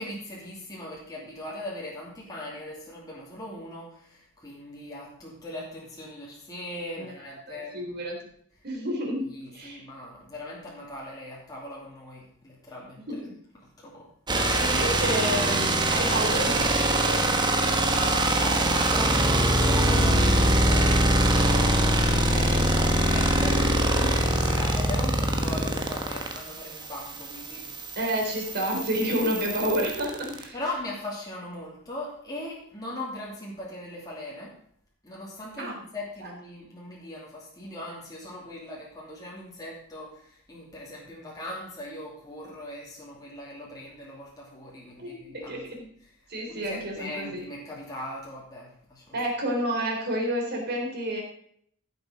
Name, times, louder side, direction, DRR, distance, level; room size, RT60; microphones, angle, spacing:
voice 1, 0.0-7.9 9.3-13.2 13.5-14.1 17.8-28.0 30.5-34.5 35.0-45.6 46.0-46.1 46.5-49.2, left 1 dB, 15° left, -5 dB, 2.6 m, -39 dB
voice 2, 7.5-8.2 8.6-9.8 13.1-13.2 14.3-17.3 22.1-22.7 23.9-24.1 28.0-30.6 35.6-35.7 36.2-36.3 45.0-45.9 46.3-47.4 49.1-51.2, equal, 45° right, 0 dB, 3.8 m, -30 dB
sound 1, 14.3-30.4, right 1 dB, 20° right, 1.2 m, -23 dB
15.0 x 7.1 x 5.0 m, 0.65 s
head